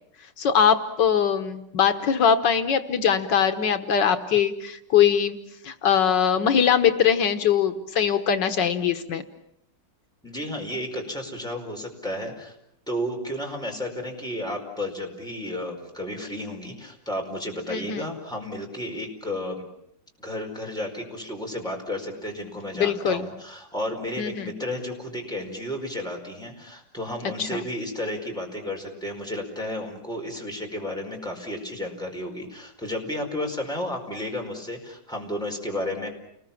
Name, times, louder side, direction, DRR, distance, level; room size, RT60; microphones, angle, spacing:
voice 1, 0.4-5.4 5.6-9.2 17.7-18.0 22.8-23.3 24.2-24.5 27.4-27.6, left 8 dB, 80° left, 8 dB, 1.8 m, -22 dB
voice 2, 10.2-12.5 12.9-19.7 20.2-36.1, left 1 dB, ahead, 0 dB, 4.8 m, -32 dB
30.0 x 21.0 x 7.2 m, 0.77 s
omnidirectional pair, 1.9 m